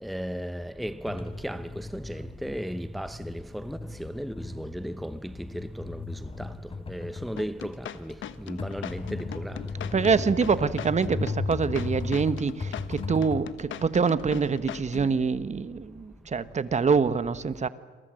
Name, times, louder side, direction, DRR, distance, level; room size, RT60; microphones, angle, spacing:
voice 1, 0.0-6.0 6.4-6.5 6.9-7.7 8.0-8.1 8.5-9.5 9.9-10.3, equal, ahead, 0.8 m, -35 dB
sound 1, 1.1-13.4, left 3 dB, 30° left, 3.4 m, -36 dB
sound 2, 7.4-15.2, left 10 dB, 75° left, 1.2 m, -39 dB
voice 2, 9.9-17.7, right 5 dB, 35° right, 1.2 m, -25 dB
28.5 x 23.0 x 7.7 m
cardioid pair, 90°, 20 cm